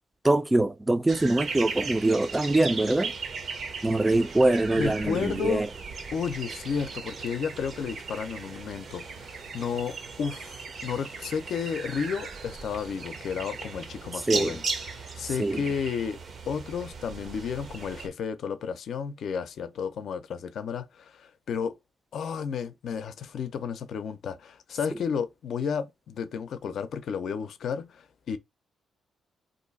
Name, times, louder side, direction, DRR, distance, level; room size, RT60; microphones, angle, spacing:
voice 1, 0.2-3.1 3.8-5.7 14.3-14.5 15.4-15.6, right 2 dB, 15° right, 0.3 m, -23 dB
sound 1, 1.1-18.1, right 4 dB, 50° right, 0.6 m, -37 dB
voice 2, 4.8-5.6 6.1-16.2 16.5-21.7 22.1-28.4, left 6 dB, 70° left, 0.5 m, -32 dB
2.6 x 2.4 x 3.9 m
cardioid pair, 105°, 0 cm